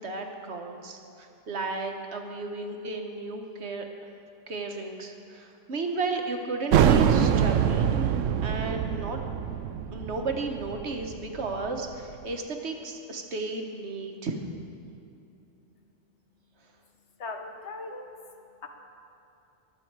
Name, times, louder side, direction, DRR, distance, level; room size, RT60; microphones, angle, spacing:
voice 1, 0.0-3.8 4.5-9.2 9.9-14.4, right 3 dB, 60° right, 3 dB, 1.3 m, -34 dB
sound 1, 6.7-12.0, right 8 dB, 75° right, 0.9 m, -24 dB
voice 2, 16.9-18.7, left 3 dB, 60° left, 4 dB, 1.3 m, -40 dB
22.0 x 8.3 x 4.6 m, 2.7 s
omnidirectional pair, 1.3 m